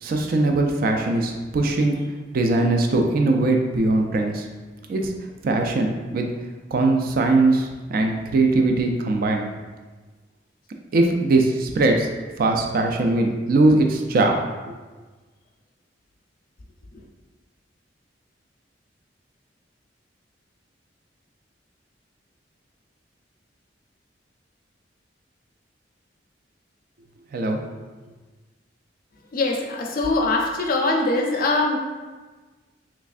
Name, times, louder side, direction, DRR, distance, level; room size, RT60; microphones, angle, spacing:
voice 1, 0.0-2.0 2.3-4.5 4.9-5.1 5.4-6.3 6.7-9.5 10.9-12.1 12.4-14.5 27.3-27.6, right 2 dB, 50° right, 3 dB, 0.3 m, -20 dB
voice 2, 29.3-31.8, left 2 dB, 50° left, 1 dB, 0.5 m, -22 dB
3.4 x 3.1 x 2.4 m, 1.3 s
head